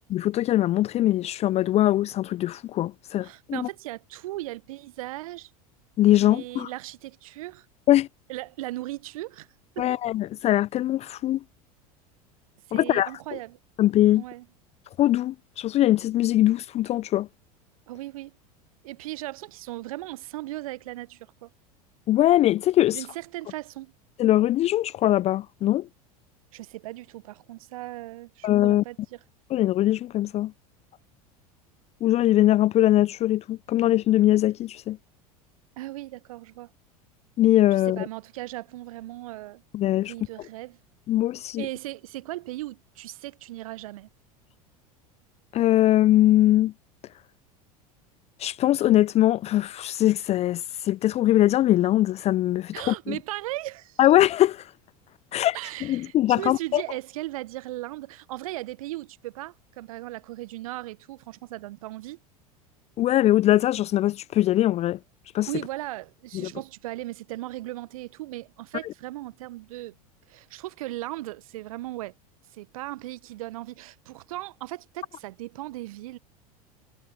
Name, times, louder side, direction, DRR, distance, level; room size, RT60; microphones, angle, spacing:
voice 1, 0.1-3.7 6.0-6.7 7.9-8.1 9.8-11.4 12.7-13.1 13.8-14.2 15.0-17.3 22.1-23.1 24.2-25.9 28.4-28.8 29.5-30.5 32.0-35.0 37.4-38.0 39.7-40.1 41.1-41.7 45.5-46.7 48.4-53.2 54.0-54.7 55.3-56.8 63.0-65.0 65.3-65.5 66.3-66.5, left 14 dB, 35° left, 0.6 m, -22 dB
voice 2, 3.2-5.5 6.2-7.6 8.3-9.5 9.7-10.0 12.7-13.6 14.1-14.5 17.9-18.3 18.8-21.5 22.9-23.9 26.5-29.2 35.8-36.7 37.9-39.6 40.0-40.8 41.6-44.1 52.7-54.0 55.5-62.2 65.5-69.9 70.3-72.1 72.5-76.2, right 17 dB, 65° right, 1.1 m, -37 dB
figure-of-eight pair, 80°, 20 cm